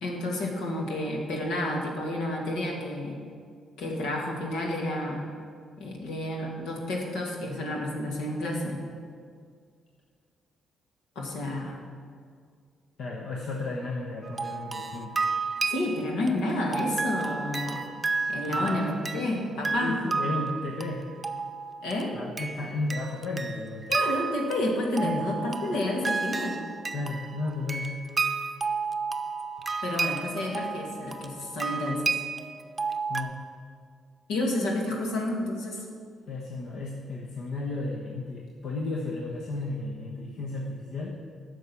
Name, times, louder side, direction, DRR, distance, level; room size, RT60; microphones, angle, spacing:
voice 1, 0.0-3.2 3.8-5.2 5.8-8.8 11.2-11.8 15.7-17.8 18.3-20.0 21.8-22.2 23.9-26.6 29.8-32.2 34.3-35.8, left 1 dB, 90° left, -1 dB, 2.1 m, -30 dB
voice 2, 13.0-15.2 18.4-18.8 19.8-21.0 22.1-23.9 25.0-25.3 26.9-27.9 33.1-33.4 36.3-41.1, left 2 dB, 70° left, -2 dB, 1.1 m, -33 dB
sound 1, 14.2-33.2, right 4 dB, 25° right, 0.6 m, -32 dB
10.5 x 6.4 x 7.0 m, 2.1 s
cardioid pair, 90°, 0 cm